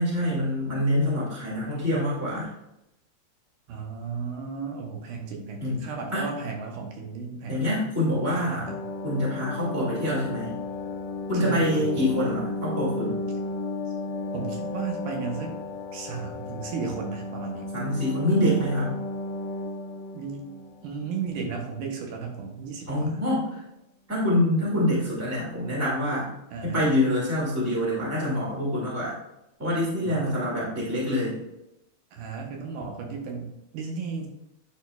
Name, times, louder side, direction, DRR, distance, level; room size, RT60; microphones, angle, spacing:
voice 1, 0.0-2.5 5.6-6.3 7.5-8.7 9.0-10.5 11.3-13.1 17.7-18.9 22.9-23.6 24.1-26.3 26.6-29.1 29.6-31.4, left 1 dB, 5° right, -6 dB, 1.5 m, -26 dB
voice 2, 3.7-7.7 8.4-8.9 11.3-12.1 14.3-15.6 15.9-17.7 20.1-20.5 20.8-23.2 26.5-26.8 30.1-30.4 32.1-34.3, right 5 dB, 80° right, 1 dB, 2.5 m, -34 dB
sound 1, 8.7-21.7 22.0-22.1, left 2 dB, 90° left, 2.1 m, -34 dB
8.9 x 5.2 x 2.3 m, 0.87 s
omnidirectional pair, 3.6 m